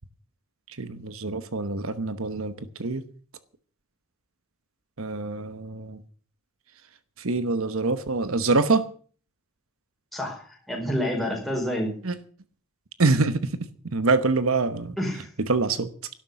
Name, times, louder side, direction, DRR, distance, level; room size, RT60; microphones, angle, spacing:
voice 1, 0.8-2.5 2.8-3.0 5.0-6.0 7.2-8.9 12.0-12.1 13.0-13.5 13.9-15.0 15.4-15.9, right 3 dB, 75° right, 1.1 m, -25 dB
voice 2, 10.1-11.9 15.0-15.3, equal, ahead, 5.1 m, -28 dB
12.0 x 12.0 x 7.0 m
head